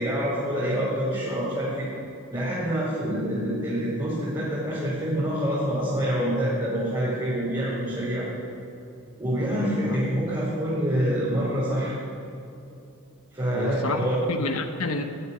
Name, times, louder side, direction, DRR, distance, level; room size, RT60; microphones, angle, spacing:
voice 1, 0.0-1.9 2.3-8.2 9.2-11.9 13.3-14.2, equal, 20° right, -9 dB, 4.6 m, -26 dB
voice 2, 13.5-15.0, left 3 dB, 75° left, 5 dB, 1.1 m, -29 dB
17.5 x 8.2 x 10.0 m, 2.7 s
head